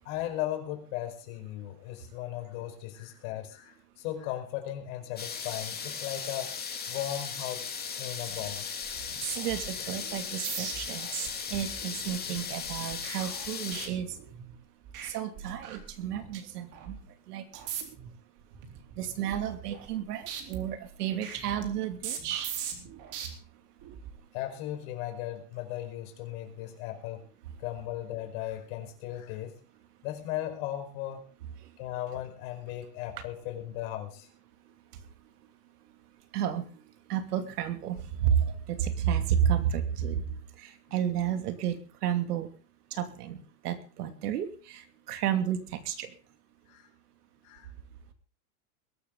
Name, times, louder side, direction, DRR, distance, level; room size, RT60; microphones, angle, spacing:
voice 1, 0.0-6.5 6.9-7.6 8.0-8.7 9.8-9.9 24.3-27.3 27.6-29.5 30.0-31.2 31.8-34.3 46.7-46.9 47.4-47.7, left 13 dB, 60° left, 5 dB, 5.1 m, -37 dB
sound 1, 5.2-13.9, left 6 dB, 20° left, 3.0 m, -37 dB
sound 2, 8.3-8.6 8.8-14.6 14.9-15.1 15.4-16.3 16.7-17.0 17.5-18.1 18.5-20.0 20.3-23.3 23.8-24.1, right 8 dB, 40° right, 3.9 m, -41 dB
voice 2, 9.4-11.1 11.5-14.1 15.0-17.0 17.3-17.4 19.0-22.5 36.3-36.6 37.1-40.2 40.6-41.8 42.0-42.5 42.9-43.4 43.6-44.8 45.1-46.1, right 9 dB, 75° right, 8 dB, 2.8 m, -31 dB
21.5 x 12.5 x 4.0 m, 0.36 s
supercardioid pair, 130°, 46 cm